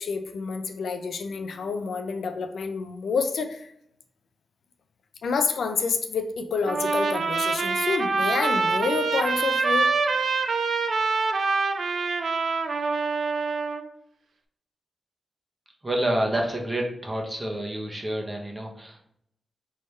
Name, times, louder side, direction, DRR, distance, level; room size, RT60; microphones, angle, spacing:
voice 1, 0.0-3.7 5.2-9.9, left 5 dB, 85° left, 7 dB, 0.4 m, -28 dB
Trumpet, 6.7-13.8, right 4 dB, 75° right, 0.4 m, -25 dB
voice 2, 15.8-19.0, right 1 dB, 25° right, 0 dB, 1.1 m, -28 dB
3.4 x 3.2 x 4.2 m, 0.72 s
cardioid pair, 70°, 0 cm